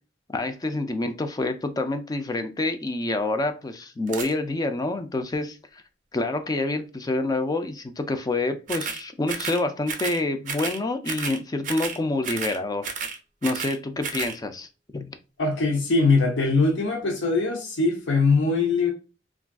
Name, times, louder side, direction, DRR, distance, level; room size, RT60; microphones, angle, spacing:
voice 1, 0.3-5.8 6.1-12.9 13.4-15.1, left 2 dB, 20° left, 0.4 m, -27 dB
sound 1, 4.1-4.3 8.7-9.0 9.3-9.6 9.9-10.2 10.5-10.8 11.0-11.4 11.6-12.0 12.2-12.6 12.8-13.8 14.0-14.4, right 5 dB, 45° right, 0.5 m, -32 dB
voice 2, 15.4-18.9, left 3 dB, 80° left, 0.6 m, -22 dB
3.5 x 2.4 x 2.3 m
head